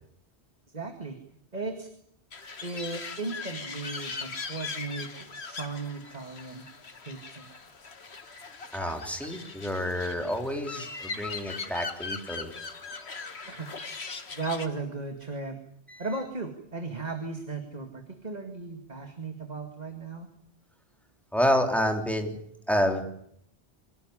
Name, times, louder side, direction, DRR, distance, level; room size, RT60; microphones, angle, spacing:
voice 1, 0.7-1.2 1.5-1.9 2.6-6.7 7.1-7.5 13.4-13.7 14.3-15.6 16.0-20.3, right 3 dB, 40° right, 5 dB, 2.3 m, -36 dB
sound 1, 2.3-14.7, left 4 dB, 75° left, 2.0 m, -40 dB
voice 2, 8.7-12.5 15.9-16.1 21.3-22.4 22.7-23.1, equal, ahead, 4 dB, 3.5 m, -28 dB
25.0 x 18.0 x 9.9 m, 0.72 s
omnidirectional pair, 1.1 m